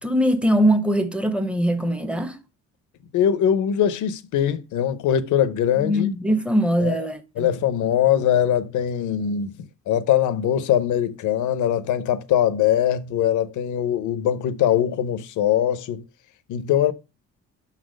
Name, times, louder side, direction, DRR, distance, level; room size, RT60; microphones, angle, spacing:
voice 1, 0.0-2.4 5.8-7.5, equal, 5° right, 0.9 m, -21 dB
voice 2, 3.1-6.1 6.8-7.0 7.4-9.5 9.9-16.0 16.5-16.9, left 10 dB, 80° left, 0.8 m, -21 dB
5.8 x 4.1 x 6.2 m
cardioid pair, 90°, 30 cm